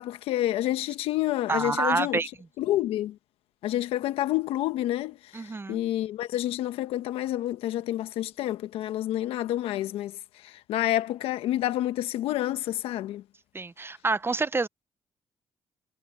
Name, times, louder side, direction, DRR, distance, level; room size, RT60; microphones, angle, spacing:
voice 1, 0.0-2.2 2.6-3.1 3.6-10.1 10.4-13.2, left 14 dB, 80° left, 1.2 m, -29 dB
voice 2, 1.5-2.3 5.3-5.8 13.5-14.7, right 3 dB, 25° right, 0.8 m, -27 dB
supercardioid pair, 60°, 10 cm